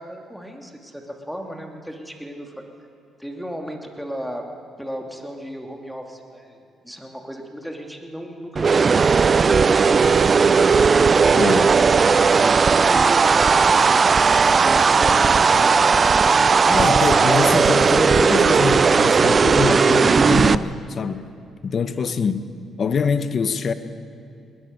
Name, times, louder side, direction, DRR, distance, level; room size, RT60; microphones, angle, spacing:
voice 1, 0.0-2.5 3.2-4.4 4.8-10.4 11.2-13.6 14.3-16.2 21.9-22.1, equal, ahead, 2.7 m, -35 dB
sound 1, 8.6-20.6, right 5 dB, 40° right, 0.5 m, -16 dB
voice 2, 11.3-11.7 16.7-21.3 21.6-22.5 22.8-23.7, left 5 dB, 50° left, 1.1 m, -24 dB
20.5 x 20.0 x 6.7 m
cardioid pair, 90°, 0 cm